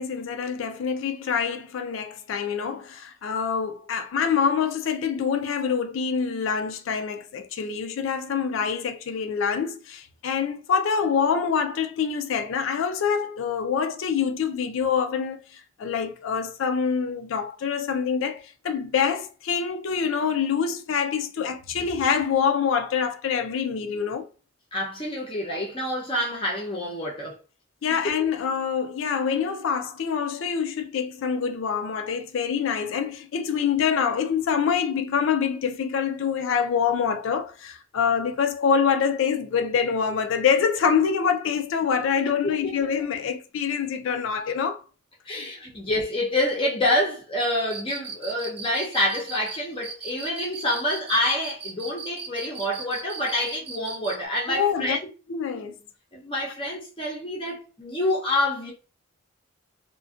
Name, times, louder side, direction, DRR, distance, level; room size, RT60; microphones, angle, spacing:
voice 1, 0.0-24.3 27.8-44.8 45.3-45.5 54.5-55.0 55.3-55.8, left 6 dB, 70° left, 0.4 m, -25 dB
voice 2, 24.7-27.4 28.0-28.1 42.4-42.6 45.3-55.0 56.1-58.7, left 1 dB, 25° left, 0.6 m, -27 dB
Cricket, 47.6-54.2, right 5 dB, 30° right, 0.3 m, -37 dB
2.5 x 2.2 x 2.4 m
head